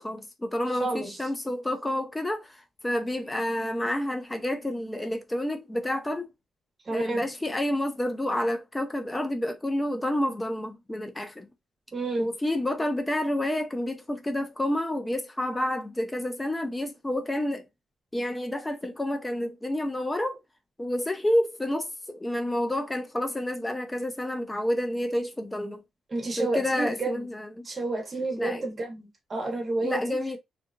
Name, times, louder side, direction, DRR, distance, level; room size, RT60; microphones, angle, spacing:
voice 1, 0.0-6.3 6.9-11.5 12.2-17.6 18.1-20.4 20.8-25.8 26.4-27.7 28.4-28.6 29.8-30.4, left 1 dB, 10° left, 0.5 m, -29 dB
voice 2, 0.8-1.2 6.9-7.3 11.9-12.3 26.1-27.2 27.6-30.2, right 2 dB, 25° right, 0.8 m, -30 dB
2.7 x 2.5 x 2.3 m
cardioid pair, 150°, 0 cm